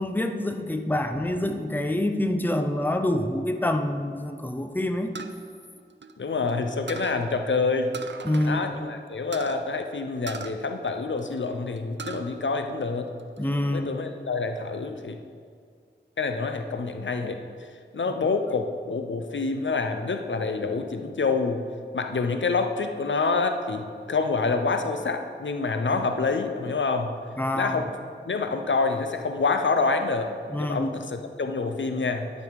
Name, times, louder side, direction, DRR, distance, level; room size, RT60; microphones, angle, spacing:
voice 1, 0.0-5.1 8.2-8.9 13.4-14.0 25.9-26.0 27.4-27.8 30.5-30.9, left 1 dB, 10° left, 7 dB, 0.6 m, -27 dB
sound 1, 5.1-6.5 6.9-7.2 7.9-8.6 8.8-8.9 9.3-9.6 10.3-11.4 11.8-12.3 12.7-13.4, right 4 dB, 70° right, 0.5 m, -39 dB
voice 2, 6.2-7.9 8.4-13.1 13.7-15.2 16.2-17.4 17.9-21.6 21.9-27.1 27.5-27.9 28.3-30.3 30.6-32.3, left 4 dB, 75° left, 6 dB, 0.6 m, -27 dB
11.5 x 5.5 x 4.7 m, 2.1 s
wide cardioid pair, 55°, 19 cm